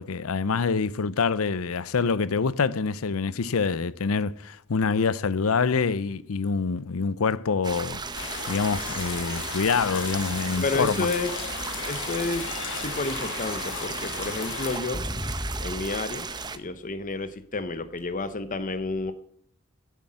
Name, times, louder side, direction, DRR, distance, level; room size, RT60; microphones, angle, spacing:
voice 1, 0.0-8.0 8.5-11.1, left 5 dB, 85° left, 0.6 m, -26 dB
sound 1, 7.6-16.6, right 4 dB, 20° right, 0.8 m, -35 dB
sound 2, 8.1-14.8, left 6 dB, 60° left, 1.6 m, -36 dB
voice 2, 10.6-11.3 11.8-15.1 15.6-19.1, left 3 dB, 40° left, 0.9 m, -31 dB
sound 3, 14.9-16.1 18.0-18.1, equal, 10° left, 2.1 m, -39 dB
11.5 x 8.3 x 7.4 m
head